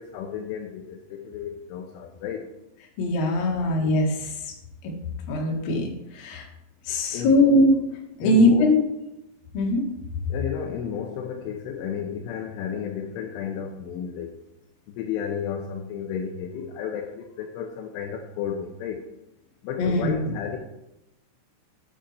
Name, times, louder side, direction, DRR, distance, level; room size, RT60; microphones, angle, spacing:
voice 1, 0.0-2.5 7.1-7.4 8.2-8.6 10.3-14.4 14.9-19.0 19.6-20.6, left 7 dB, 80° left, 3 dB, 3.2 m, -32 dB
voice 2, 3.0-4.5 5.3-5.9 6.1-6.4 6.8-7.8 8.2-8.8 9.5-9.8 19.8-20.3, left 1 dB, 55° left, 0 dB, 3.0 m, -21 dB
8.8 x 8.8 x 4.3 m, 0.88 s
omnidirectional pair, 5.8 m